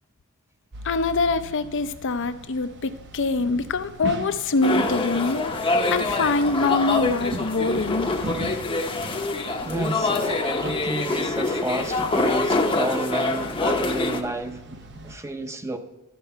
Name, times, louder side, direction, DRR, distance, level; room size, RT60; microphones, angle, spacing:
sound 1, 0.7-15.2, right 1 dB, 55° right, 0.8 m, -39 dB
voice 1, 0.8-5.5 5.9-8.1, left 3 dB, 60° left, 11 dB, 0.5 m, -24 dB
sound 2, 4.6-14.2, left 2 dB, 25° left, 0.7 m, -25 dB
voice 2, 9.7-14.6 15.0-15.8, right 2 dB, 15° right, 7 dB, 0.6 m, -30 dB
12.5 x 4.5 x 5.6 m, 1.0 s
head